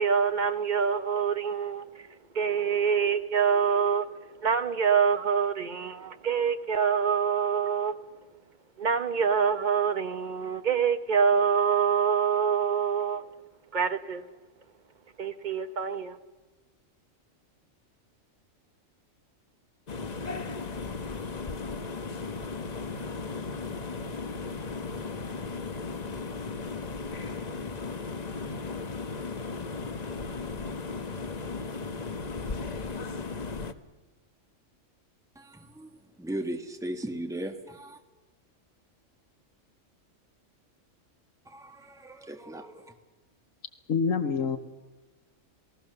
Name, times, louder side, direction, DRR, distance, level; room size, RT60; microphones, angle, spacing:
voice 1, 0.0-1.8 2.3-4.1 4.4-7.9 8.8-13.2 13.7-14.2 15.2-16.2, right 6 dB, 40° right, 1.2 m, -25 dB
sound 1, 19.9-33.7, left 4 dB, 35° left, 1.0 m, -36 dB
voice 2, 35.3-35.9 36.2-38.0 41.5-42.9, right 1 dB, 5° right, 1.6 m, -37 dB
voice 3, 43.9-44.6, left 5 dB, 80° left, 1.6 m, -26 dB
28.5 x 18.0 x 6.8 m
omnidirectional pair, 1.4 m